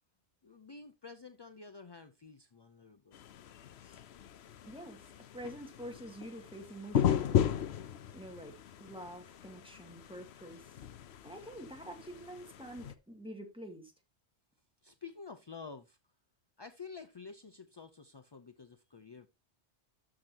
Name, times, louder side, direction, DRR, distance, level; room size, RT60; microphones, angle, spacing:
voice 1, 0.4-3.2 14.8-16.0 16.6-19.3, left 5 dB, 35° left, 0.4 m, -50 dB
sound 1, 3.1-12.9, left 9 dB, 70° left, 0.9 m, -36 dB
voice 2, 4.6-5.1 5.3-7.8 8.1-10.7 11.2-13.9, right 1 dB, 5° right, 2.0 m, -47 dB
13.0 x 6.1 x 2.8 m
omnidirectional pair, 1.2 m